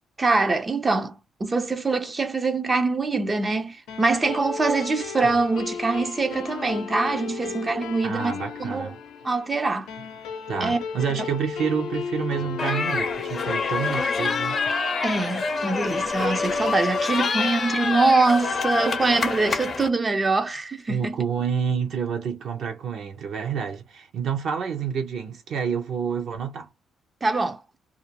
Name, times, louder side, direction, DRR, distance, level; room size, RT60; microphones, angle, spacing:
voice 1, 0.2-8.3 8.6-8.9 9.2-9.9 10.6-10.8 11.1-11.2 15.0-21.2 27.2-27.6, right 3 dB, 25° right, 0.4 m, -24 dB
sound 1, 3.9-16.6, left 6 dB, 90° left, 0.6 m, -35 dB
voice 2, 8.0-8.9 10.5-14.6 20.9-26.7, right 7 dB, 70° right, 0.6 m, -28 dB
sound 2, 12.6-19.9, left 4 dB, 45° left, 0.6 m, -26 dB
2.4 x 2.0 x 2.8 m
cardioid pair, 90°, 0 cm